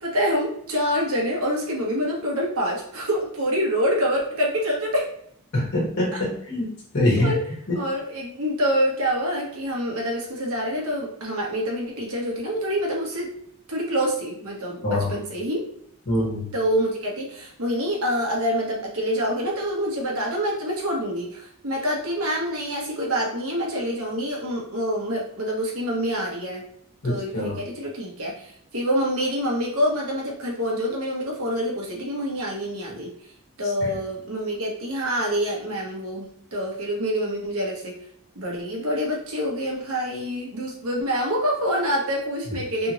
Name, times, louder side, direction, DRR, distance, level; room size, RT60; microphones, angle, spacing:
voice 1, 0.0-5.1 7.2-7.4 7.7-13.3 13.7-15.6 16.5-26.6 27.0-33.1 33.6-37.9 38.3-42.9, equal, 85° right, -2 dB, 1.1 m, -26 dB
voice 2, 5.5-6.7 6.9-7.3 7.7-7.8 14.8-15.1 16.1-16.4 27.0-27.6 33.8-33.9, left 1 dB, 55° left, -4 dB, 1.4 m, -24 dB
3.4 x 2.9 x 2.9 m, 0.67 s
head